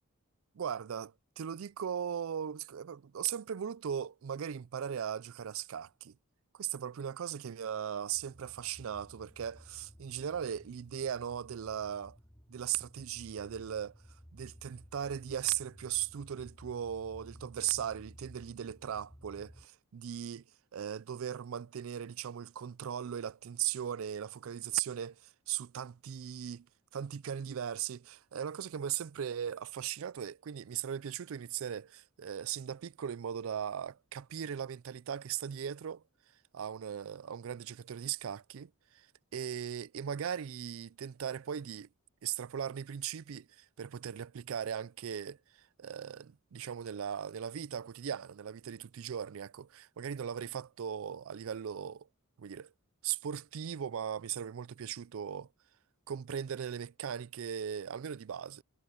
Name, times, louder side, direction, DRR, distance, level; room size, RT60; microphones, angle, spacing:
voice 1, 0.5-6.1 6.5-12.2 12.5-13.9 14.3-20.4 20.7-25.2 25.5-26.7 26.9-36.0 36.5-39.1 39.3-41.9 42.2-52.1 52.4-52.7 53.0-55.5 56.1-58.6, right 9 dB, 70° right, 0.4 m, -38 dB
sound 1, 8.1-19.6, equal, 15° left, 3.9 m, -56 dB
head